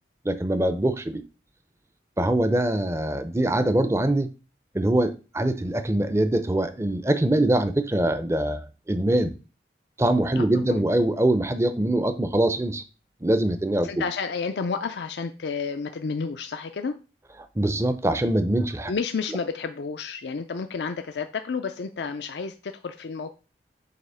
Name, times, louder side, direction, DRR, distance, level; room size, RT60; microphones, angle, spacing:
voice 1, 0.2-1.2 2.2-4.3 4.7-9.3 10.0-12.8 13.2-13.9 17.6-18.9, right 1 dB, 15° right, 0.5 m, -23 dB
voice 2, 10.4-10.8 13.8-17.0 18.9-23.3, left 5 dB, 75° left, 0.5 m, -31 dB
7.8 x 2.9 x 5.6 m
head